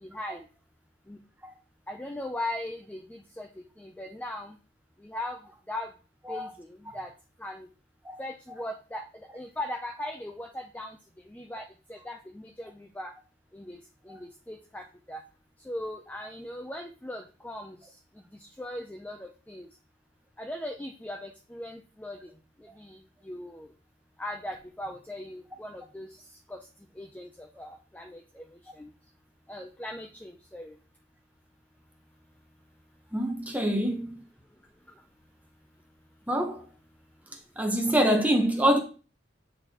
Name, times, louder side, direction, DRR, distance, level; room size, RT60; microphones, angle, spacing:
voice 1, 0.0-0.4 1.1-1.2 1.9-3.5 3.8-4.5 5.0-5.4 5.7-5.9 6.3-7.1 7.4-7.7 8.2-9.0 9.3-11.0 11.3-13.1 13.5-13.8 14.1-15.2 15.7-17.8 18.6-19.7 20.4-22.3 22.8-23.0 23.2-23.7 24.2-26.1 26.5-26.6 27.0-28.4 28.8-28.9 29.5-30.7, left 1 dB, 10° left, 0.4 m, -39 dB
voice 2, 33.1-34.1 36.3-36.6 37.6-38.8, equal, 10° right, 0.9 m, -25 dB
8.8 x 4.0 x 2.9 m
head